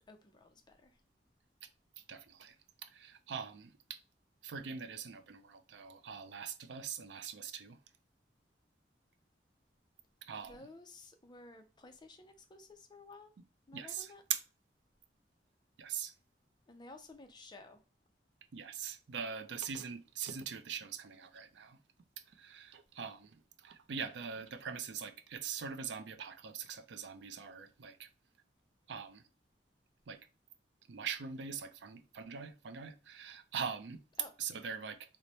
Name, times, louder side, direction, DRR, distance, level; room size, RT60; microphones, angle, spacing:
voice 1, 0.1-1.0 10.3-13.3 13.7-14.2 16.7-17.8 34.2-34.3, left 2 dB, 25° left, 0.4 m, -54 dB
voice 2, 2.1-2.5 2.8-4.0 4.4-7.8 10.2-10.6 13.7-14.4 15.8-16.1 18.5-21.8 22.4-28.1 28.9-29.2 30.1-30.2 30.9-34.0 34.4-35.0, right 7 dB, 90° right, 0.5 m, -42 dB
3.0 x 2.1 x 4.0 m
head